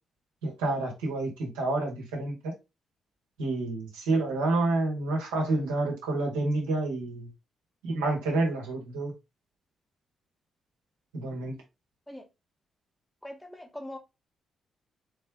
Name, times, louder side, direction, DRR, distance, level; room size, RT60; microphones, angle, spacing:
voice 1, 0.4-2.5 3.4-7.3 7.8-9.1 11.1-11.6, right 2 dB, 85° right, 1.4 m, -29 dB
voice 2, 13.2-14.0, left 1 dB, 10° left, 1.1 m, -41 dB
4.1 x 3.3 x 3.5 m
hypercardioid pair, 40°, 0 cm